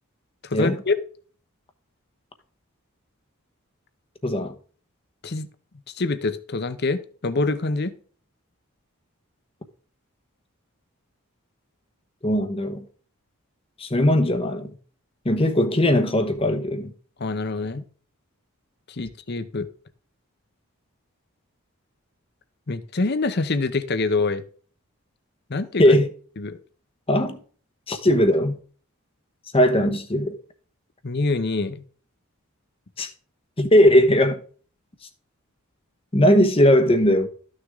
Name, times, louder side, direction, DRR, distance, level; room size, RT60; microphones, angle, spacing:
voice 1, 0.4-0.9 5.2-5.5 5.9-8.0 17.2-17.8 18.9-19.7 22.7-24.4 25.5-26.0 26.4-26.6 31.0-31.8, left 3 dB, 50° left, 0.8 m, -25 dB
voice 2, 4.2-4.5 12.2-12.9 13.8-14.7 15.2-16.9 25.8-26.1 27.1-27.4 27.9-28.6 29.5-30.4 33.0-33.1 33.6-34.4 36.1-37.3, equal, 25° left, 1.0 m, -19 dB
13.0 x 6.5 x 3.6 m
head